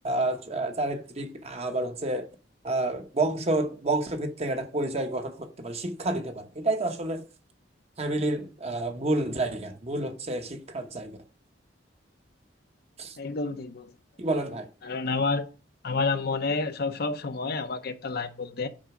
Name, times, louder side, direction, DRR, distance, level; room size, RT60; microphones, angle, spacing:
voice 1, 0.0-2.3 2.6-7.2 8.0-11.1 13.0-13.2 14.2-14.7, right 2 dB, 35° right, 1.1 m, -29 dB
voice 2, 13.2-13.9 14.8-15.5 15.8-18.7, left 3 dB, 55° left, 0.7 m, -29 dB
6.4 x 4.6 x 5.9 m
head